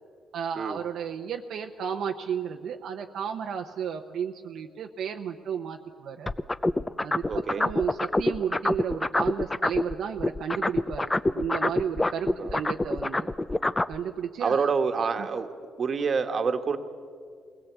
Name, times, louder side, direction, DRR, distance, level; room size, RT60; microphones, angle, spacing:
voice 1, 0.3-6.3 7.0-13.3 13.9-14.7 15.2-15.3, right 8 dB, 70° right, 4 dB, 0.8 m, -33 dB
sound 1, 6.3-9.9 10.2-14.0, left 2 dB, 15° left, 0.6 m, -25 dB
voice 2, 7.3-7.7 12.4-12.6 14.4-15.5 15.8-16.8, right 5 dB, 45° right, 8 dB, 1.4 m, -27 dB
22.0 x 17.0 x 8.2 m, 2.1 s
cardioid pair, 90°, 0 cm